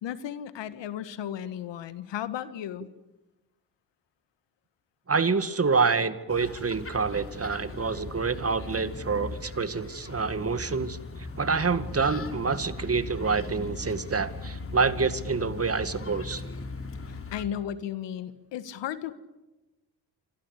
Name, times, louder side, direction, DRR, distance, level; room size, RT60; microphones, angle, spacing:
voice 1, 0.0-2.9 17.0-19.1, left 10 dB, 70° left, 14 dB, 1.8 m, -35 dB
voice 2, 5.1-11.0 11.4-16.4, right 4 dB, 30° right, 12 dB, 2.1 m, -27 dB
sound 1, 6.3-17.4, left 3 dB, 30° left, 3.7 m, -39 dB
26.5 x 26.0 x 8.4 m, 1.1 s
hypercardioid pair, 55°, 45 cm